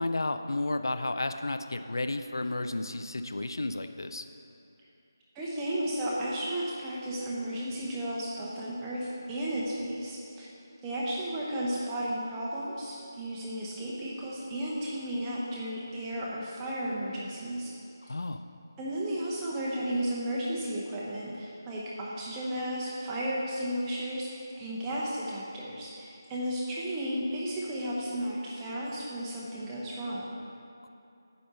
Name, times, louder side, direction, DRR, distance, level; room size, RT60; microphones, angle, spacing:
voice 1, 0.0-4.3 18.0-18.4, left 2 dB, 75° left, 8 dB, 0.5 m, -32 dB
voice 2, 5.3-10.5 10.8-17.7 18.8-30.4, right 1 dB, 10° right, -6 dB, 0.8 m, -34 dB
9.4 x 4.3 x 6.7 m, 2.7 s
figure-of-eight pair, 170°, 2 cm